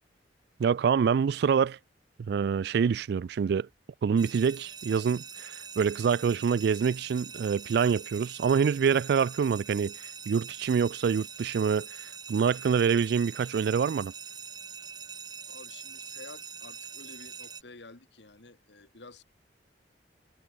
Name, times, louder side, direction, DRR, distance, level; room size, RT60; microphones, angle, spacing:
voice 1, 0.6-1.8 2.3-3.7 4.0-9.9 10.3-14.1, right 6 dB, 65° right, 0.3 m, -26 dB
sound 1, 4.2-17.6, right 6 dB, 25° right, 0.8 m, -44 dB
voice 2, 15.5-19.2, left 3 dB, 70° left, 1.9 m, -50 dB
head